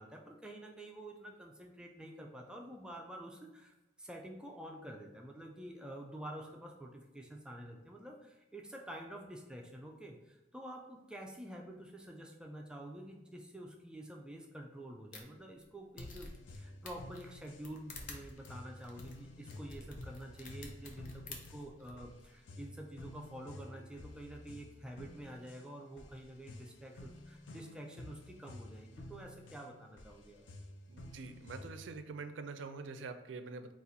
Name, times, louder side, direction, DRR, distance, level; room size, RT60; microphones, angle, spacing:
voice 1, 0.0-30.4, right 1 dB, 5° right, 0 dB, 0.3 m, -48 dB
sound 1, 15.1-15.2 15.6-15.7 16.0-16.6 16.9-21.9, left 3 dB, 50° left, 0.6 m, -50 dB
sound 2, 16.0-32.0, left 1 dB, 90° left, 0.5 m, -52 dB
voice 2, 30.9-33.7, right 4 dB, 85° right, 9 dB, 0.4 m, -45 dB
4.0 x 2.4 x 4.0 m, 1.1 s
head